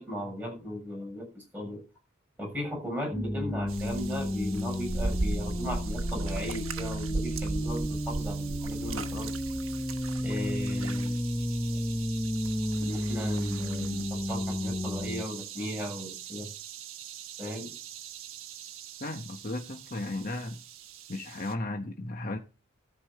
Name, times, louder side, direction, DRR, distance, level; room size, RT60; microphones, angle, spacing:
voice 1, 0.0-1.8 2.4-9.3 10.2-11.2 11.7-11.8 12.8-16.5 17.4-17.7, equal, 10° right, 2 dB, 6.9 m, -36 dB
sound 1, 3.1-15.2, equal, 10° left, 1.1 m, -32 dB
sound 2, 3.7-21.5, right 3 dB, 85° right, 1.2 m, -38 dB
voice 2, 19.0-20.6 21.1-22.4, left 2 dB, 40° left, 3 dB, 1.1 m, -35 dB
13.5 x 5.5 x 7.7 m, 0.32 s
head